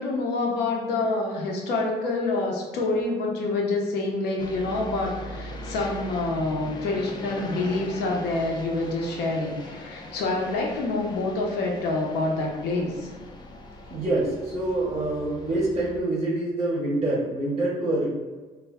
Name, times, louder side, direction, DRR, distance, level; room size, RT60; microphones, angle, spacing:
voice 1, 0.0-13.1, left 2 dB, 75° left, -1 dB, 0.6 m, -27 dB
sound 1, 4.4-16.0, left 1 dB, 25° left, 0.3 m, -40 dB
voice 2, 13.9-18.1, right 2 dB, 25° right, -4 dB, 0.6 m, -26 dB
2.2 x 2.1 x 3.4 m, 1.3 s
cardioid pair, 110°, 17 cm